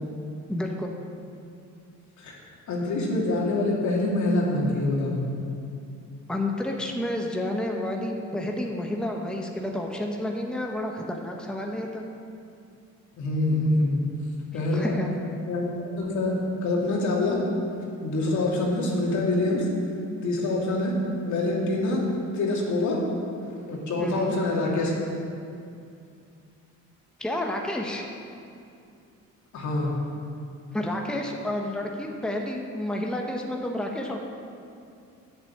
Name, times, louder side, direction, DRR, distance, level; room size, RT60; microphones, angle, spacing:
voice 1, 0.5-1.0 6.3-12.0 14.5-15.1 24.0-24.3 27.2-28.0 30.7-34.2, left 1 dB, 5° left, 1 dB, 1.1 m, -30 dB
voice 2, 2.7-5.2 13.2-14.0 14.5-15.0 15.5-15.7 16.0-16.3 16.6-17.4 18.0-19.7 20.2-21.0 21.3-22.0 22.3-23.0 23.7-24.9 29.5-29.9, left 2 dB, 70° left, -3 dB, 2.5 m, -25 dB
8.3 x 7.1 x 8.5 m, 2.5 s
cardioid pair, 90°, 30 cm